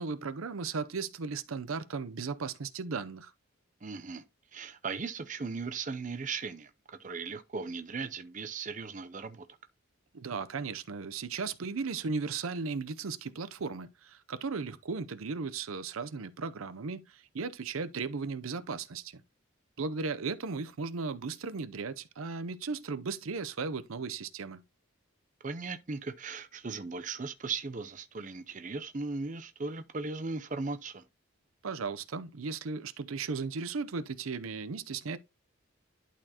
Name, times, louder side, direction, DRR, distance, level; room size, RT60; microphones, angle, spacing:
voice 1, 0.0-3.3 10.1-19.2 19.8-24.6 31.6-35.2, right 4 dB, 85° right, 0.6 m, -36 dB
voice 2, 3.8-4.2 4.5-6.7 7.0-9.4 25.4-31.0, right 4 dB, 35° right, 0.6 m, -37 dB
11.5 x 4.2 x 2.9 m
head